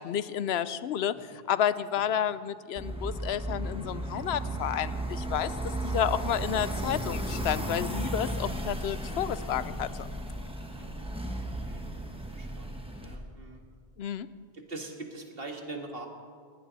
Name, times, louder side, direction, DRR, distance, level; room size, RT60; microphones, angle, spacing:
voice 1, 0.0-10.1 14.0-14.3, left 9 dB, 85° left, 15 dB, 0.9 m, -31 dB
sound 1, 2.8-13.1, right 1 dB, 5° right, 1.5 m, -34 dB
voice 2, 5.7-6.2 8.9-9.3 9.6-9.7 10.7-11.1 11.4-11.9 12.3-13.6 14.5-16.1, right 2 dB, 65° right, 3 dB, 2.0 m, -44 dB
20.0 x 18.0 x 4.1 m, 2.1 s
omnidirectional pair, 1.0 m